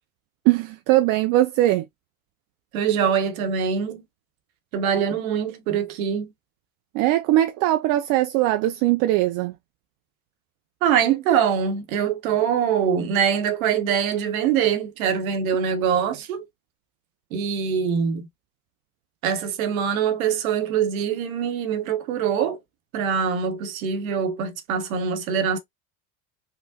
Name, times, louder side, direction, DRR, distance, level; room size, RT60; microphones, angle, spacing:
voice 1, 0.5-1.8 6.9-9.5, right 15 dB, 50° right, 0.5 m, -20 dB
voice 2, 2.7-4.0 4.7-6.3 10.8-16.4 17.3-18.3 19.2-22.6 22.9-25.6, right 7 dB, 75° right, 0.9 m, -23 dB
3.5 x 2.1 x 2.7 m
hypercardioid pair, 80°, 42 cm